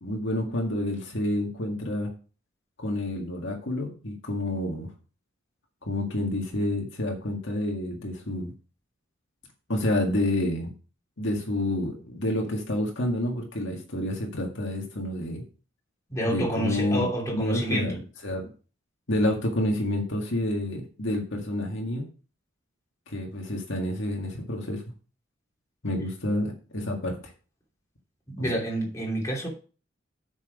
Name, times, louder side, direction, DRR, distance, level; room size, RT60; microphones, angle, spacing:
voice 1, 0.0-2.1 2.8-4.9 5.8-8.5 9.7-10.7 11.2-15.4 16.3-17.1 17.3-18.0 18.2-18.5 19.1-22.1 23.1-24.8 25.8-27.2 28.4-28.5, left 1 dB, 65° left, 1.9 m, -29 dB
voice 2, 16.1-18.0 28.3-29.5, right 1 dB, 15° left, 3.0 m, -28 dB
7.8 x 6.3 x 5.1 m
head